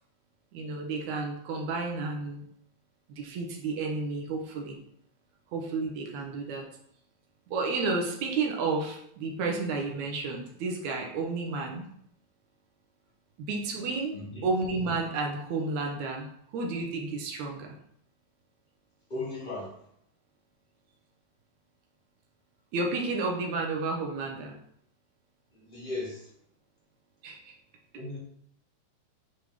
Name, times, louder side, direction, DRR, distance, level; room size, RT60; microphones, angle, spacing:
voice 1, 0.5-2.4 3.2-4.8 5.5-6.6 7.5-11.9 13.4-14.2 14.4-16.3 16.5-17.7 22.7-24.5 27.2-27.5, right 3 dB, 70° right, 1 dB, 2.3 m, -31 dB
voice 2, 14.1-14.4 19.1-19.7 25.7-26.2 28.0-28.2, left 2 dB, 25° left, -5 dB, 1.2 m, -36 dB
9.1 x 3.6 x 3.2 m, 0.69 s
omnidirectional pair, 3.6 m